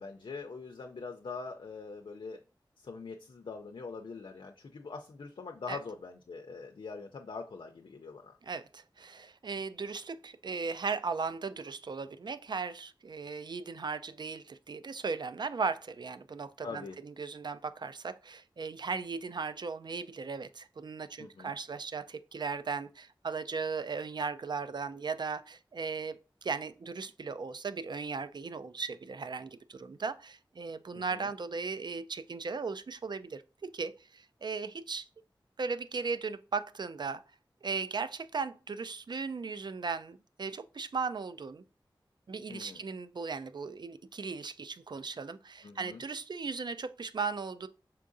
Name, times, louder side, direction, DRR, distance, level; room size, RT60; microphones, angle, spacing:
voice 1, 0.0-2.4 2.8-8.3 16.6-17.0 21.2-21.5 30.9-31.3 42.5-42.8 45.6-46.0, left 4 dB, 85° left, 0.4 m, -43 dB
voice 2, 8.4-35.1 35.6-37.2 37.6-41.6 42.3-47.7, right 4 dB, 60° right, 0.3 m, -37 dB
5.5 x 3.7 x 2.5 m
wide cardioid pair, 55°, 8 cm